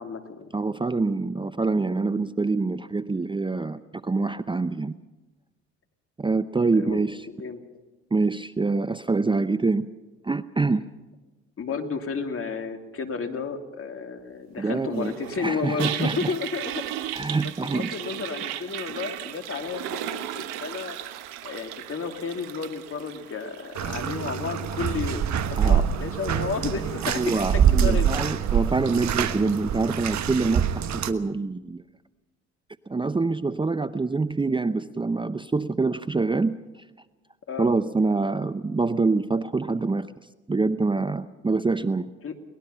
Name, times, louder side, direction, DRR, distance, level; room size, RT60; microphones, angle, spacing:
voice 1, 0.0-0.5 6.8-7.1 7.3-7.6 11.6-16.7 17.4-21.0 21.4-27.5 27.7-28.1 37.5-37.7 42.2-42.3, left 5 dB, 40° left, 6 dB, 2.8 m, -32 dB
voice 2, 0.5-5.0 6.2-7.3 8.1-9.9 10.2-10.9 14.6-15.1 15.4-16.3 17.1-17.9 18.4-18.6 25.5-25.9 27.0-31.8 32.9-36.8 37.6-40.1 40.5-42.1, right 3 dB, 15° right, 13 dB, 0.7 m, -25 dB
Toilet flush, 15.0-30.2, right 12 dB, 80° right, 1.2 m, -38 dB
Bathtub (filling or washing), 23.8-31.1, right 8 dB, 55° right, 1.3 m, -25 dB
23.0 x 20.0 x 5.7 m, 1.2 s
hypercardioid pair, 60°, 33 cm